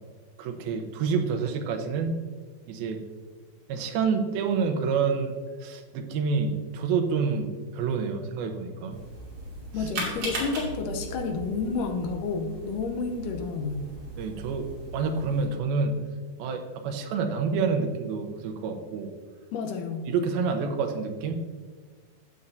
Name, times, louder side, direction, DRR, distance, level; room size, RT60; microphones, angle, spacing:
voice 1, 0.4-2.1 2.7-3.0 3.7-5.3 5.6-9.0 14.2-15.9 16.4-19.1 20.1-21.5, right 5 dB, 85° right, 6 dB, 2.7 m, -28 dB
sound 1, 8.9-15.5, right 1 dB, 60° right, 4.1 m, -38 dB
voice 2, 9.7-13.9 19.5-20.1, left 4 dB, 75° left, 5 dB, 2.2 m, -30 dB
14.5 x 8.2 x 2.7 m, 1.5 s
omnidirectional pair, 4.2 m